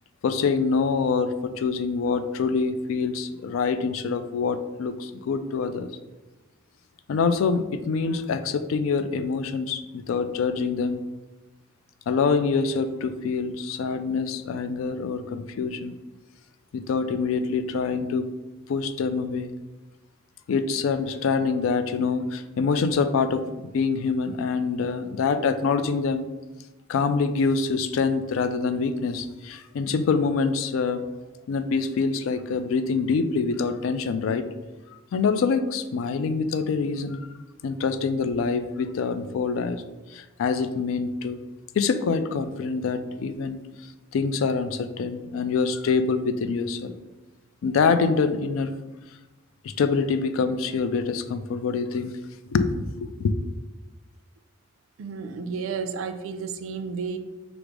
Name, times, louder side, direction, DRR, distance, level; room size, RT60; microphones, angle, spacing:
voice 1, 0.2-5.9 7.1-11.0 12.1-16.0 16.7-18.3 18.7-19.5 20.5-26.3 26.9-31.0 31.5-34.5 35.1-37.3 37.6-39.8 40.1-41.4 41.7-43.6 44.1-46.9 47.6-48.7 49.6-52.1 52.5-53.3, left 5 dB, 80° left, 11 dB, 0.3 m, -25 dB
voice 2, 55.0-57.2, right 5 dB, 80° right, 8 dB, 0.4 m, -32 dB
5.0 x 2.0 x 4.6 m, 1.1 s
head